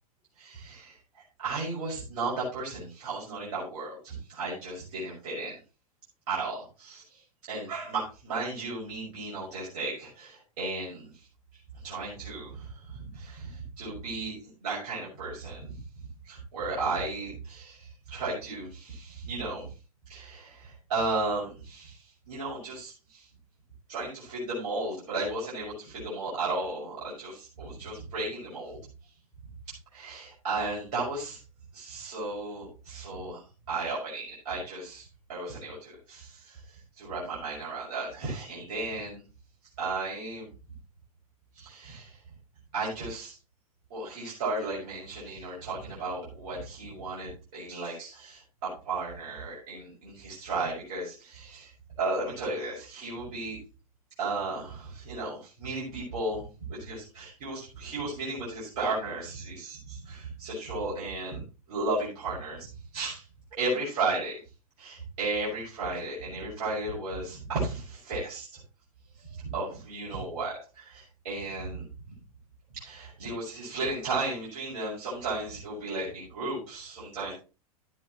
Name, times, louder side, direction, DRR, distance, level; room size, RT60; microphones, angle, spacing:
voice 1, 0.4-1.0 1.4-5.5 6.3-11.1 11.8-14.3 14.6-15.8 16.2-19.7 20.1-23.3 23.9-28.8 29.9-31.4 31.7-33.4 33.7-39.2 39.8-40.5 41.5-42.2 42.7-43.4 43.9-51.7 52.0-53.6 54.2-56.4 56.7-61.4 61.7-63.2 63.6-64.4 64.8-68.6 69.2-72.2 72.7-77.3, right 3 dB, 55° right, -7 dB, 6.2 m, -34 dB
12.5 x 9.7 x 3.1 m, 0.32 s
figure-of-eight pair, 90°, 19 cm